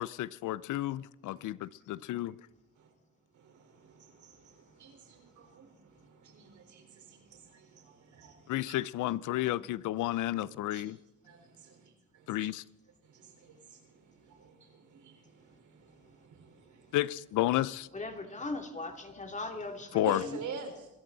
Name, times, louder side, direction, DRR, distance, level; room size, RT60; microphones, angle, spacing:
voice 1, 0.0-2.3 8.5-11.0 12.3-12.6 16.9-17.9 19.9-20.2, left 15 dB, 80° left, 20 dB, 0.6 m, -31 dB
voice 2, 3.3-8.8 9.4-9.6 10.7-10.9 11.2-12.5 13.0-17.0 19.9-20.9, right 4 dB, 70° right, 4 dB, 4.4 m, -48 dB
voice 3, 17.9-20.4, left 2 dB, 25° left, 4 dB, 2.9 m, -39 dB
25.5 x 14.0 x 4.0 m, 0.94 s
cardioid pair, 90°, 30 cm